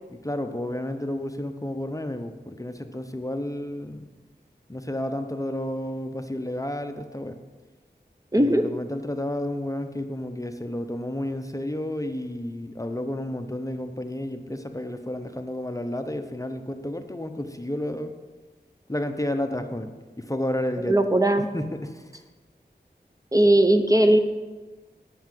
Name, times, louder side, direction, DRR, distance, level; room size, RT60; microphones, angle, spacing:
voice 1, 0.1-4.1 4.7-7.4 8.3-18.1 18.9-21.0 21.4-22.2, left 1 dB, 20° left, 7 dB, 0.8 m, -31 dB
voice 2, 8.3-8.6 20.9-21.5 23.3-24.2, right 1 dB, 20° right, 6 dB, 0.7 m, -18 dB
9.3 x 5.5 x 7.6 m, 1.3 s
wide cardioid pair, 50°, 18 cm